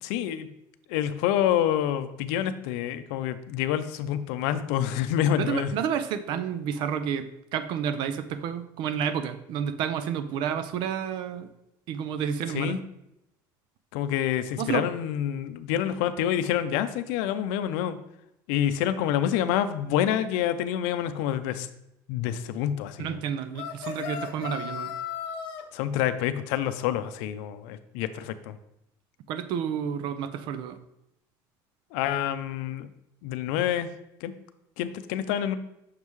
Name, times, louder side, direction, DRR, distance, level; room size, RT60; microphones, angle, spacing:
voice 1, 0.0-0.5 0.9-5.7 12.5-12.8 13.9-18.0 18.5-21.7 22.1-23.2 25.7-28.6 31.9-32.9 33.2-33.9 34.2-34.3 34.8-35.6, left 10 dB, 90° left, 11 dB, 0.5 m, -27 dB
voice 2, 5.4-11.5 11.9-12.8 14.6-14.8 23.0-24.9 29.3-30.8, right 8 dB, 60° right, 11 dB, 0.5 m, -30 dB
sound 1, 23.5-25.6, left 8 dB, 60° left, 0.8 m, -35 dB
6.5 x 5.4 x 3.1 m, 0.84 s
cardioid pair, 155°, 9 cm